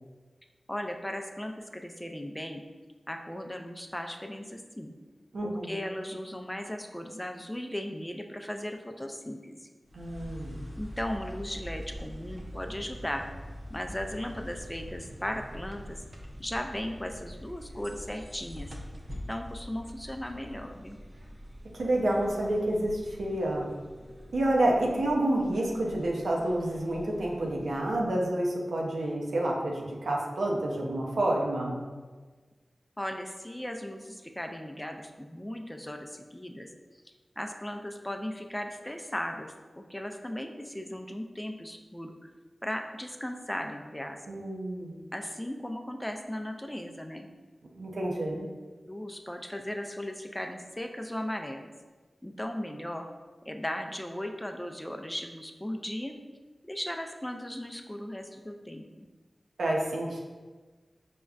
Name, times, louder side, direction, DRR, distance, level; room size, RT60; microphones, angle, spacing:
voice 1, 0.7-2.6 3.1-4.9 5.4-9.7 10.8-13.3 13.7-16.0 16.4-18.7 19.3-21.0 33.0-36.7 37.4-42.1 42.6-44.4 45.1-47.3 48.3-48.5 48.9-51.7 52.2-53.1 53.5-56.1 56.6-59.1, left 1 dB, 15° left, 4 dB, 0.3 m, -37 dB
voice 2, 5.3-5.8 9.9-10.6 21.7-23.7 24.3-31.8 44.3-45.0 47.7-48.4 59.6-60.2, right 1 dB, 85° right, -2 dB, 0.6 m, -29 dB
sound 1, 9.8-28.3, equal, 45° right, 0.6 m, -45 dB
5.0 x 2.2 x 2.3 m, 1.3 s
cardioid pair, 45°, 0 cm